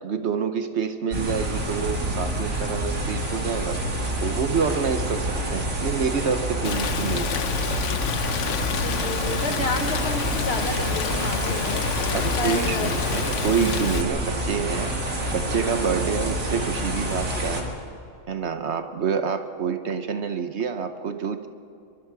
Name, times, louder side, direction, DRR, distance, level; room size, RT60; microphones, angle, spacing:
voice 1, 0.0-7.4 9.5-9.7 12.1-14.9 15.3-17.7 18.3-21.5, right 6 dB, 60° right, 9 dB, 1.2 m, -27 dB
sound 1, 1.1-17.6, right 1 dB, 85° right, 2.8 m, -28 dB
sound 2, 3.8-17.7, left 2 dB, 35° left, 2.0 m, -43 dB
Rain, 6.6-14.0, left 8 dB, 65° left, 1.1 m, -28 dB
voice 2, 8.7-12.9, left 2 dB, 50° left, 6 dB, 1.6 m, -31 dB
23.5 x 23.0 x 4.8 m, 2.7 s
omnidirectional pair, 1.4 m